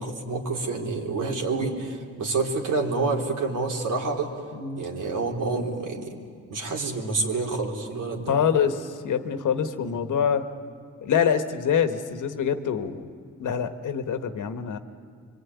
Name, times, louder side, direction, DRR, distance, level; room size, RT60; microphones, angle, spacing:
voice 1, 0.0-4.3 4.8-6.2 6.5-8.3 9.8-10.0, right 3 dB, 75° right, 0 dB, 3.6 m, -28 dB
voice 2, 4.5-4.8 8.3-10.4 11.0-13.1 13.4-14.8, left 7 dB, 75° left, 8 dB, 1.5 m, -25 dB
24.5 x 24.0 x 9.6 m, 2.1 s
cardioid pair, 75°, 31 cm